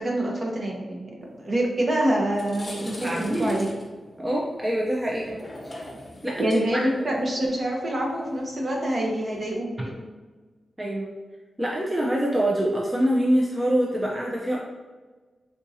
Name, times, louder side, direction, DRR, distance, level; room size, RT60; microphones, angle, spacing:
voice 1, 0.0-3.7 6.4-10.1, right 1 dB, 45° right, -2 dB, 0.8 m, -26 dB
sound 1, 1.7-1.8 2.2-9.5, left 1 dB, 35° left, 0.7 m, -41 dB
voice 2, 3.0-3.5 4.2-5.4 5.7-5.8 6.2-6.8 10.8-11.1 11.6-14.6, right 1 dB, 20° right, -3 dB, 0.5 m, -25 dB
3.6 x 2.7 x 2.7 m, 1.3 s
cardioid pair, 75°, 0 cm